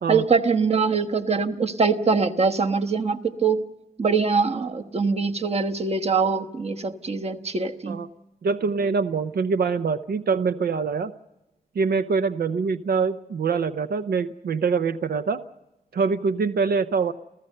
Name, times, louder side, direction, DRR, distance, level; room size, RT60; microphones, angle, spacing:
voice 1, 0.1-3.6 4.0-8.0, right 5 dB, 40° right, 6 dB, 1.2 m, -23 dB
voice 2, 8.4-11.1 11.7-15.4 15.9-17.1, right 5 dB, 80° right, 10 dB, 0.7 m, -24 dB
29.0 x 15.0 x 6.6 m, 1.0 s
wide cardioid pair, 120°, 16 cm